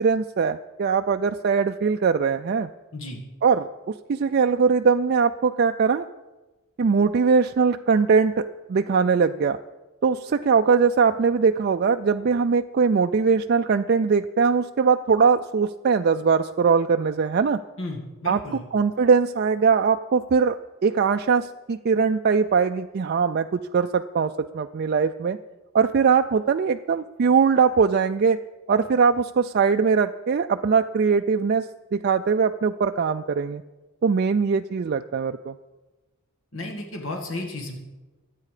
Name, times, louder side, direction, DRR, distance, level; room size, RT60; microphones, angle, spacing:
voice 1, 0.0-2.7 3.4-6.1 6.8-8.4 8.7-9.6 10.0-17.6 18.3-18.4 18.7-20.6 20.8-25.4 25.7-28.4 28.7-31.7 31.9-33.6 34.0-35.5, right 5 dB, 50° right, 6 dB, 0.4 m, -21 dB
voice 2, 17.8-18.6 36.5-37.8, left 2 dB, 65° left, 2 dB, 1.9 m, -33 dB
23.5 x 8.4 x 5.0 m, 1.2 s
head